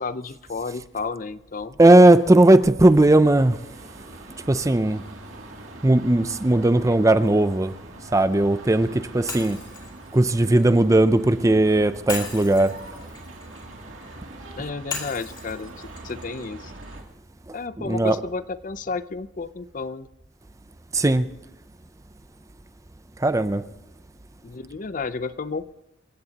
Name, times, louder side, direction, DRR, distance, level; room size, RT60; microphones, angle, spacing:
voice 1, 0.0-1.8 14.6-16.7 17.5-20.1 24.4-25.7, left 4 dB, 40° left, 0.5 m, -32 dB
voice 2, 1.8-3.6 4.5-5.0 5.8-7.7 8.1-9.6 10.1-12.7 17.8-18.2 20.9-21.3 23.2-23.6, right 1 dB, 15° right, 0.4 m, -17 dB
sound 1, 2.8-17.0, right 2 dB, 85° right, 2.6 m, -43 dB
Shatter, 9.3-11.3 12.1-14.2 14.9-17.0, left 5 dB, 20° left, 2.5 m, -38 dB
27.5 x 16.0 x 2.9 m
head